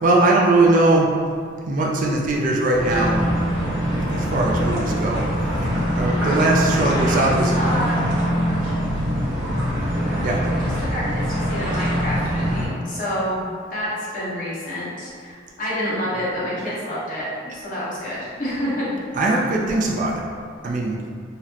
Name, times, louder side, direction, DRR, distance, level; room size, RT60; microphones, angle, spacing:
voice 1, 0.0-1.1 1.7-3.2 4.0-5.3 5.6-7.6 10.2-10.4 19.2-20.2 20.6-21.0, right 2 dB, 45° right, -2 dB, 0.3 m, -20 dB
sound 1, 2.7-12.7, equal, 90° right, 1.2 m, -23 dB
voice 2, 6.6-8.0 10.0-13.4 13.7-19.0, equal, 45° left, -9 dB, 1.0 m, -29 dB
4.0 x 2.0 x 2.8 m, 2.1 s
head